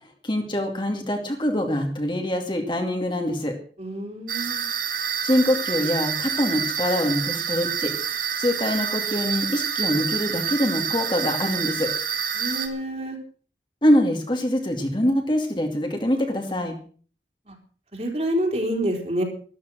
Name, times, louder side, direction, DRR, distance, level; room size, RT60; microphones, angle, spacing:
voice 1, 0.2-3.5 5.2-7.9 8.4-11.9 13.8-16.8, left 1 dB, 25° left, 3 dB, 2.5 m, -24 dB
voice 2, 3.8-4.6 12.4-13.2 17.5-17.6 17.9-19.2, right 1 dB, 35° right, 2 dB, 3.9 m, -27 dB
sound 1, 4.3-12.7, right 8 dB, 50° right, 2.0 m, -28 dB
13.5 x 13.0 x 6.3 m, 0.43 s
head